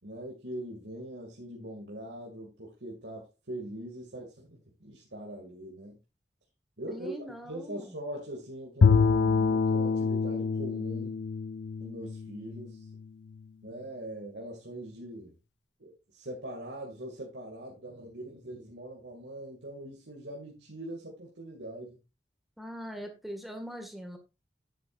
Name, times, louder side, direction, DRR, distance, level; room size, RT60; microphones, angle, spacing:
voice 1, 0.0-6.0 6.8-11.2 11.8-12.9 13.6-15.3 15.8-22.0, right 1 dB, 85° right, 2.3 m, -42 dB
voice 2, 6.9-8.0 22.6-24.2, equal, ahead, 1.8 m, -41 dB
Bowed string instrument, 8.8-13.0, left 5 dB, 80° left, 0.4 m, -26 dB
10.5 x 8.4 x 2.5 m
head